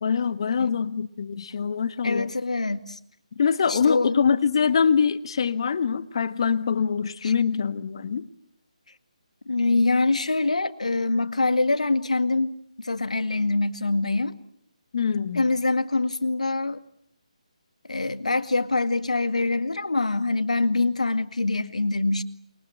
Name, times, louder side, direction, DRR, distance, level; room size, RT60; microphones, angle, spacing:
voice 1, 0.0-2.3 3.4-8.3 14.9-15.5, left 6 dB, 45° left, 14 dB, 1.5 m, -24 dB
voice 2, 2.0-3.0 3.7-4.2 7.2-7.3 9.5-14.3 15.3-16.8 17.9-22.2, left 3 dB, 75° left, 11 dB, 2.0 m, -24 dB
28.5 x 23.0 x 8.9 m, 0.71 s
figure-of-eight pair, 150°, 4 cm